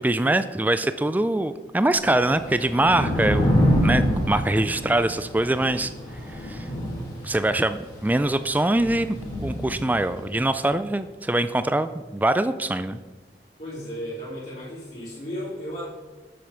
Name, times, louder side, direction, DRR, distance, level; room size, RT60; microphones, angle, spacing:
voice 1, 0.0-3.6 3.8-5.9 6.3-6.7 7.2-9.2 9.4-13.0, right 1 dB, 10° right, 12 dB, 0.3 m, -23 dB
Thunder / Rain, 1.9-10.3, equal, 20° left, 3.0 m, -26 dB
voice 2, 13.6-15.9, equal, 40° left, -12 dB, 3.4 m, -34 dB
8.8 x 7.7 x 5.7 m, 1.3 s
head